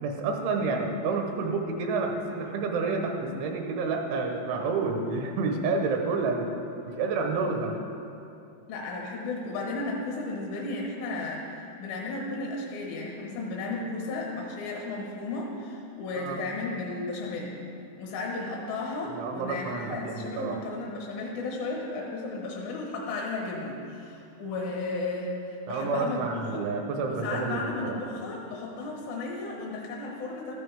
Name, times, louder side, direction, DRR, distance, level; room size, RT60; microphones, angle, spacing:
voice 1, 0.0-6.5 6.9-7.8 16.1-16.4 19.1-20.6 25.7-28.0, right 4 dB, 80° right, 3 dB, 3.3 m, -29 dB
voice 2, 8.7-17.5 18.0-26.6 27.1-30.5, left 3 dB, 65° left, -2 dB, 2.4 m, -34 dB
13.5 x 12.5 x 3.5 m, 2.7 s
omnidirectional pair, 5.6 m